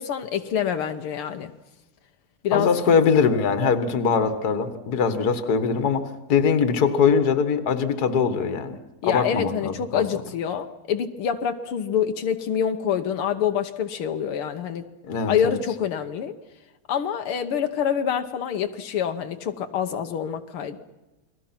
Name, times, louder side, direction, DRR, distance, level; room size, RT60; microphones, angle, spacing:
voice 1, 0.0-1.5 2.4-2.7 9.0-14.9 15.3-16.4 16.9-20.8, left 8 dB, 80° left, 7 dB, 2.0 m, -26 dB
voice 2, 2.5-6.0 6.3-8.8 9.0-10.0 15.0-15.6, left 6 dB, 50° left, 9 dB, 2.0 m, -22 dB
29.5 x 21.5 x 5.9 m, 1.1 s
omnidirectional pair, 2.4 m